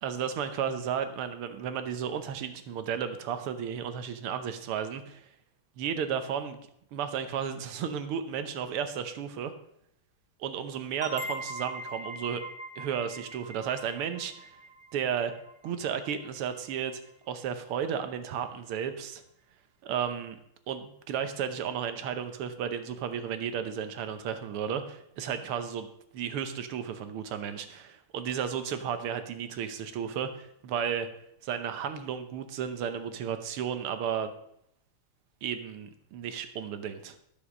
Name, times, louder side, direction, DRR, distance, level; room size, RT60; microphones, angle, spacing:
voice 1, 0.0-5.3 5.8-6.6 6.9-9.5 10.4-12.4 12.8-14.5 14.9-15.3 15.6-17.0 17.3-19.2 19.8-20.4 20.7-25.9 26.1-31.1 31.4-34.3 35.4-37.2, right 8 dB, 85° right, 10 dB, 1.8 m, -33 dB
sound 1, 11.0-16.4, right 1 dB, 10° right, 0.4 m, -42 dB
10.0 x 7.1 x 6.4 m, 0.75 s
omnidirectional pair, 2.4 m